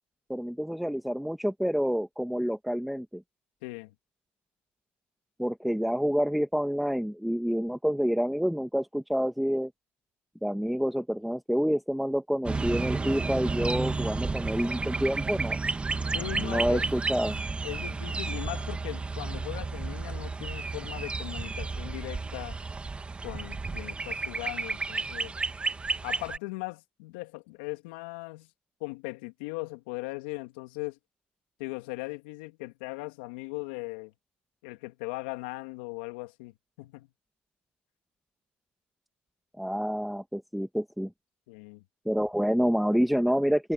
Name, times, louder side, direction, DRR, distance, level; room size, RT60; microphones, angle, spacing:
voice 1, 0.3-3.2 5.4-9.7 10.4-15.6 16.4-17.4 39.6-41.1 42.1-43.7, equal, ahead, 1.9 m, -28 dB
voice 2, 3.6-3.9 16.1-16.8 17.6-22.6 23.2-25.3 26.0-28.5 28.8-31.0 31.6-34.1 34.6-37.1 41.5-41.8, left 24 dB, 85° left, 2.7 m, -39 dB
sound 1, 12.4-26.4, right 3 dB, 25° right, 2.1 m, -32 dB
hypercardioid pair, 70°, 5 cm